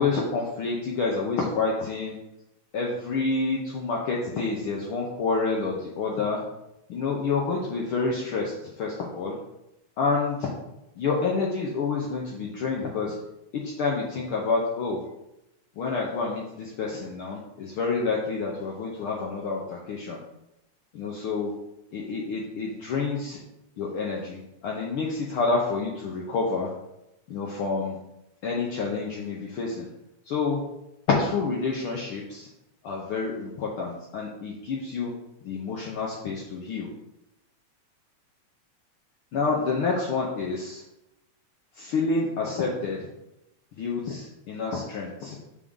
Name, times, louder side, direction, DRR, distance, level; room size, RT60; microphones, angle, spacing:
voice 1, 0.0-2.1 2.7-6.4 6.9-9.4 10.0-10.5 11.0-13.2 13.5-15.0 15.8-20.2 20.9-21.5 21.9-23.4 23.8-26.7 27.3-28.0 28.4-29.9 30.3-30.6 31.1-32.5 32.8-35.1 35.4-36.9 39.3-40.8 41.8-43.0 43.8-45.4, left 4 dB, 90° left, -2 dB, 1.2 m, -28 dB
6.9 x 4.9 x 3.7 m, 0.88 s
omnidirectional pair, 3.4 m